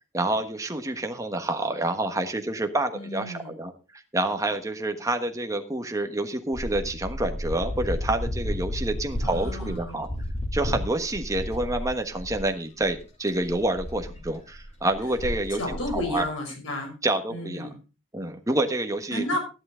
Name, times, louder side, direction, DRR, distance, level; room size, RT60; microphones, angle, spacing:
voice 1, 0.1-10.1 10.5-15.6 15.9-16.3 17.0-17.7 18.1-19.4, right 2 dB, 15° right, 5 dB, 1.3 m, -28 dB
voice 2, 2.9-3.5 9.2-10.0 15.6-16.9 17.3-17.8 19.1-19.4, left 1 dB, 75° left, 2 dB, 6.0 m, -32 dB
sound 1, 6.5-12.5 12.8-12.9 13.3-16.2, left 1 dB, 35° left, 2.3 m, -33 dB
13.0 x 11.0 x 3.8 m, 0.31 s
head